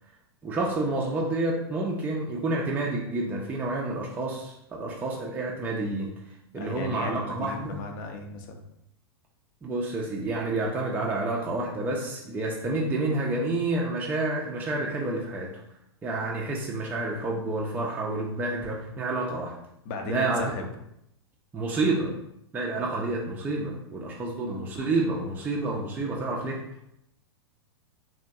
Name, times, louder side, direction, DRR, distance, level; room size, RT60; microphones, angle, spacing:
voice 1, 0.4-6.1 6.5-7.8 9.6-15.5 16.0-19.5 20.1-20.5 21.5-22.1 22.5-26.6, right 2 dB, 10° right, -2 dB, 0.3 m, -29 dB
voice 2, 6.5-8.6 19.8-20.7, left 3 dB, 50° left, 4 dB, 0.5 m, -36 dB
2.7 x 2.1 x 2.5 m, 0.77 s
hypercardioid pair, 110°, 14 cm